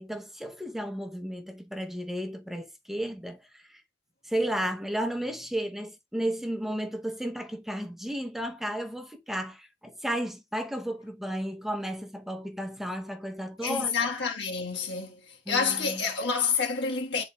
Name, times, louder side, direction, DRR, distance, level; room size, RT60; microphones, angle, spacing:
voice 1, 0.0-3.8 4.2-13.9 15.5-16.0, equal, ahead, 0.7 m, -33 dB
voice 2, 13.6-15.2 15.5-17.2, left 5 dB, 75° left, 1.4 m, -28 dB
10.0 x 4.1 x 2.3 m
head